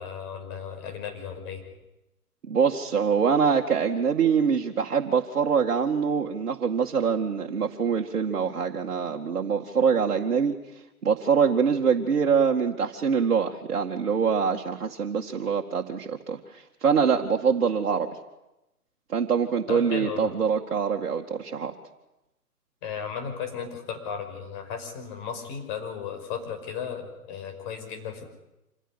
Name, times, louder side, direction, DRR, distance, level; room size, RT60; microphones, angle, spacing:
voice 1, 0.0-1.6 19.7-20.3 22.8-28.3, left 7 dB, 30° left, 5 dB, 5.5 m, -35 dB
voice 2, 2.5-10.6 11.0-18.2 19.1-21.7, right 6 dB, 60° right, -1 dB, 2.2 m, -24 dB
27.0 x 15.5 x 9.9 m, 0.95 s
figure-of-eight pair, 130°, 46 cm